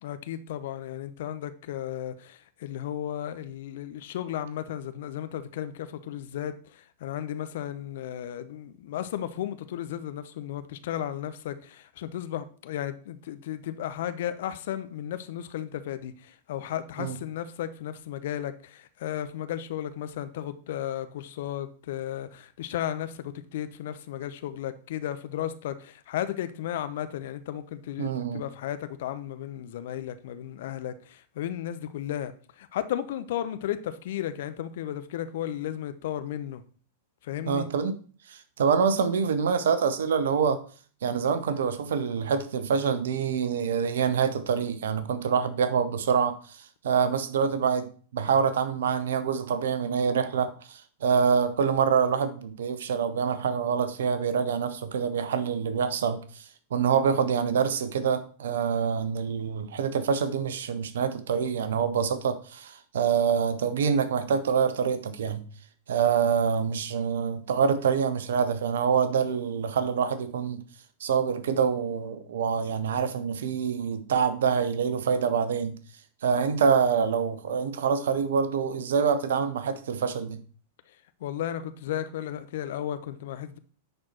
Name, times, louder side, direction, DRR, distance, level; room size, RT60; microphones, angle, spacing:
voice 1, 0.0-36.6 37.2-37.7 81.2-83.6, left 11 dB, 60° left, 0.7 m, -34 dB
voice 2, 28.0-28.4 37.5-38.0 38.3-40.6 41.0-46.6 46.8-56.4 56.7-65.4 65.9-70.6 71.0-75.8 76.2-80.4, right 6 dB, 65° right, 0.9 m, -26 dB
10.0 x 4.4 x 4.3 m
figure-of-eight pair, 95°, 0 cm